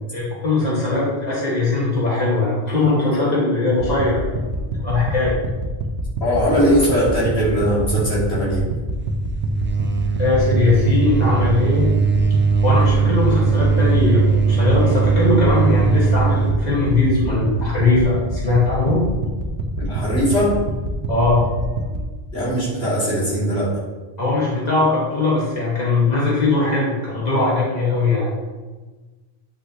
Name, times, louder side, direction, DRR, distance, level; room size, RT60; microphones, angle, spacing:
voice 1, 0.1-4.2 4.8-5.4 10.2-11.9 12.6-19.0 21.1-21.4 24.2-28.3, left 3 dB, 40° left, -7 dB, 2.4 m, -20 dB
sound 1, 3.8-22.1, right 1 dB, 80° right, 1.2 m, -27 dB
voice 2, 6.2-8.6 19.8-20.6 22.3-23.8, equal, 85° left, -8 dB, 3.2 m, -20 dB
sound 2, 8.9-16.7, right 5 dB, 15° right, 0.4 m, -19 dB
9.7 x 6.1 x 3.2 m, 1.3 s
omnidirectional pair, 1.1 m